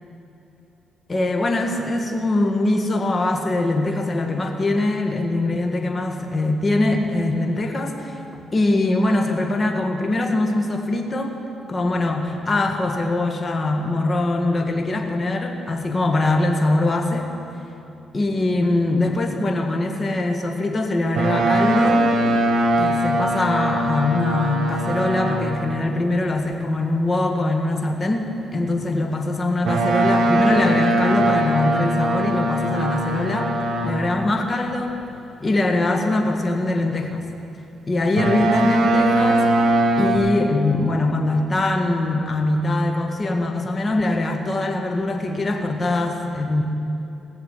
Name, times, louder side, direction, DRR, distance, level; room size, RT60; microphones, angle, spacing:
voice 1, 1.1-11.3 11.7-17.3 18.1-22.1 22.8-33.5 33.8-35.0 35.4-37.3 37.9-39.5 40.0-46.6, left 2 dB, 30° left, 3 dB, 1.6 m, -22 dB
Boat Water vehicle, 21.1-25.7 29.6-34.2 38.2-40.2, right 1 dB, 65° right, 2.0 m, -20 dB
17.5 x 7.4 x 7.6 m, 2.9 s
cardioid pair, 90°, 0 cm